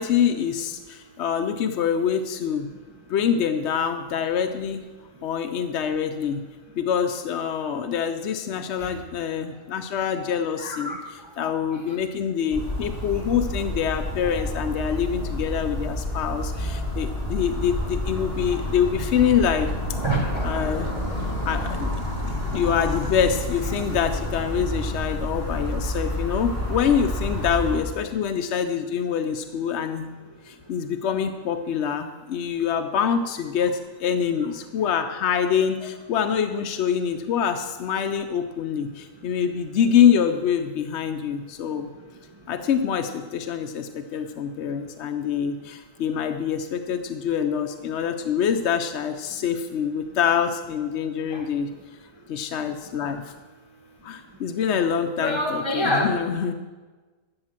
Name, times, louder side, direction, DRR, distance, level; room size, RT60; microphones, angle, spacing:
voice 1, 0.0-2.7 3.1-4.9 5.2-6.4 6.7-10.9 11.4-19.7 20.4-20.9 21.5-21.9 22.5-30.1 30.4-41.9 42.5-51.7 52.3-53.3 54.0-56.5, left 8 dB, 65° left, 7 dB, 0.9 m, -25 dB
voice 2, 10.6-11.0 11.4-11.8 20.0-20.5 23.7-23.8 35.8-35.9 51.3-51.5 53.1-53.2 55.2-56.1, equal, 25° right, 0 dB, 1.0 m, -27 dB
sound 1, 12.5-27.8, left 1 dB, 25° left, 3.1 m, -29 dB
12.5 x 7.2 x 7.4 m, 1.3 s
omnidirectional pair, 1.3 m